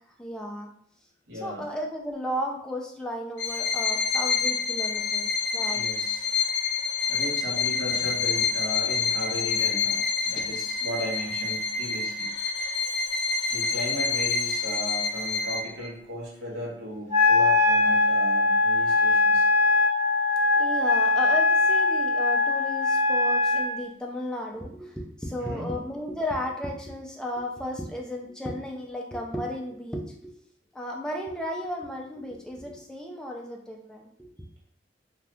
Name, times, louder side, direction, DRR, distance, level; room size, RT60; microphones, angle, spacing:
voice 1, 0.2-0.7 1.4-5.8 10.4-10.5 20.6-30.4 30.7-34.3, left 1 dB, 5° left, -1 dB, 0.4 m, -34 dB
voice 2, 1.3-1.6 5.7-6.3 7.1-12.3 13.5-19.4 25.4-25.7, left 1 dB, 65° right, -5 dB, 1.2 m, -36 dB
Bowed string instrument, 3.4-15.9, left 5 dB, 70° left, 0.4 m, -27 dB
Wind instrument woodwind instrument, 17.1-23.7, left 3 dB, 45° right, 1.1 m, -21 dB
2.6 x 2.4 x 3.4 m, 0.65 s
head